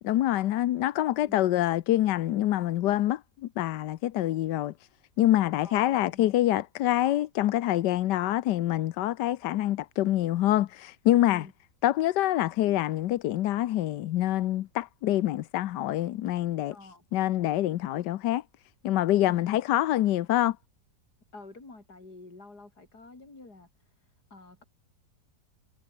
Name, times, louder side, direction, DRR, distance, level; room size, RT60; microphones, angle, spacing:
voice 1, 0.0-4.9 5.2-11.4 11.8-16.8 17.1-18.4 18.8-20.6, left 14 dB, 85° left, 1.4 m, -26 dB
voice 2, 5.6-6.2 11.3-11.5 16.7-17.0 21.3-23.7 24.3-24.6, left 3 dB, 70° left, 5.6 m, -48 dB
omnidirectional pair, 1.8 m